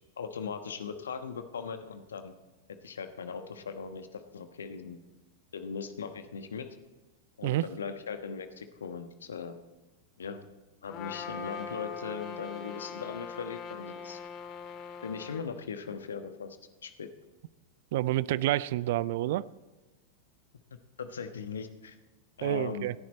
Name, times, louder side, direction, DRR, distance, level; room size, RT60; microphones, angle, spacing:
voice 1, 0.2-2.3 2.8-5.0 5.5-6.7 7.4-9.6 10.2-10.4 10.8-14.2 15.0-16.6 16.8-17.1 21.0-21.9 22.4-22.9, left 6 dB, 70° left, 8 dB, 1.1 m, -39 dB
Trumpet, 10.9-15.4, left 6 dB, 35° left, 1.7 m, -41 dB
voice 2, 17.9-19.5 22.4-22.9, right 15 dB, 55° right, 21 dB, 0.5 m, -28 dB
26.5 x 10.5 x 4.2 m, 1.2 s
figure-of-eight pair, 90°, 0 cm